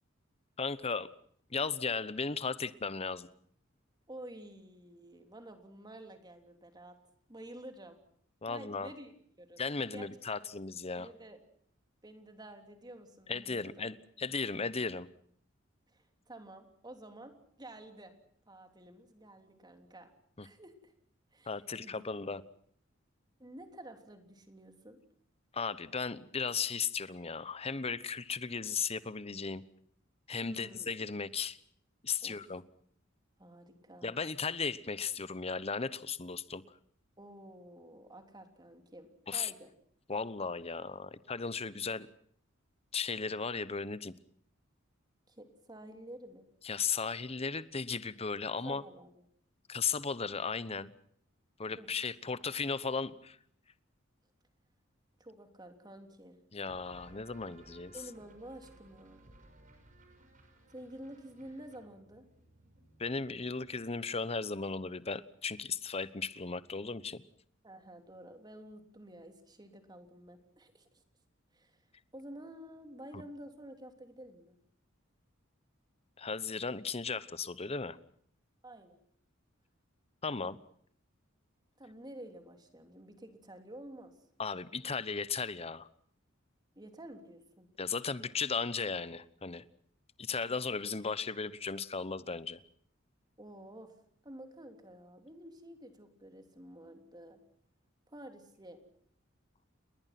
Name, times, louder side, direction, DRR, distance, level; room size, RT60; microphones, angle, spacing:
voice 1, 0.6-1.1 1.5-3.3 8.4-8.9 9.6-11.1 13.3-15.1 20.4-20.5 21.5-22.4 25.5-29.6 30.3-31.6 32.0-32.6 34.0-36.6 39.3-39.5 40.1-42.1 42.9-44.1 46.6-48.8 49.7-50.9 51.6-53.4 56.5-57.9 63.0-67.2 73.1-73.2 76.2-78.0 80.2-80.6 84.4-85.9 87.8-89.6 90.2-92.6, left 5 dB, 30° left, 16 dB, 1.0 m, -36 dB
voice 2, 4.1-7.0 7.3-8.0 8.5-9.1 9.4-9.6 9.9-10.4 11.0-11.4 12.0-13.9 15.9-18.1 18.5-20.1 20.4-20.9 21.3-22.4 23.4-25.0 30.4-30.9 32.2-32.4 33.4-34.1 37.2-39.7 45.3-46.5 48.6-49.1 51.7-51.9 55.2-56.4 57.9-59.2 60.7-62.2 67.6-70.9 71.5-71.8 72.1-74.6 78.6-79.0 81.8-84.1 86.7-87.7 93.4-93.9 94.2-97.4 98.1-98.8, right 1 dB, 20° right, 6 dB, 3.3 m, -50 dB
sound 1, 56.7-64.0, right 2 dB, 40° right, 5.7 m, -60 dB
29.5 x 20.5 x 6.0 m, 0.63 s
head